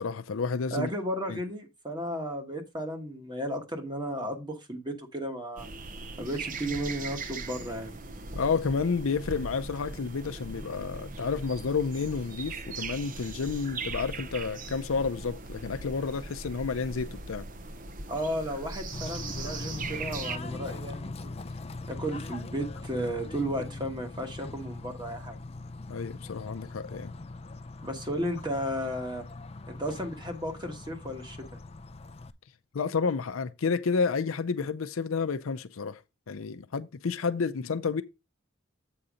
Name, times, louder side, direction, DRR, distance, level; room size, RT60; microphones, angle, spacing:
voice 1, 0.0-0.9 1.3-1.4 8.3-17.5 25.9-27.1 32.7-36.0 36.3-38.0, left 5 dB, 80° left, 0.6 m, -30 dB
voice 2, 0.7-5.7 6.2-8.0 18.1-21.4 21.9-25.4 27.8-29.3 29.7-31.5, equal, 20° right, 1.3 m, -34 dB
sound 1, 5.6-20.4, right 3 dB, 40° right, 0.7 m, -40 dB
Bird / Train, 18.9-32.3, left 2 dB, 30° left, 0.4 m, -41 dB
7.8 x 4.2 x 5.0 m
head